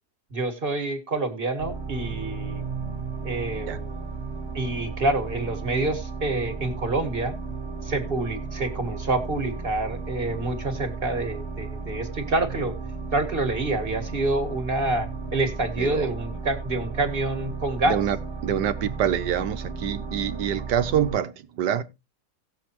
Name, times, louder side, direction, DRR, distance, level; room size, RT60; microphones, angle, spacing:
voice 1, 0.3-2.6 3.2-4.0 4.5-7.3 7.8-12.7 13.1-18.0, right 2 dB, 35° right, 1.8 m, -27 dB
sound 1, 1.6-21.2, right 4 dB, 15° right, 1.5 m, -34 dB
voice 2, 15.8-16.1 17.8-18.2 18.4-21.8, right 9 dB, 90° right, 1.5 m, -26 dB
17.5 x 7.0 x 2.9 m
omnidirectional pair, 1.8 m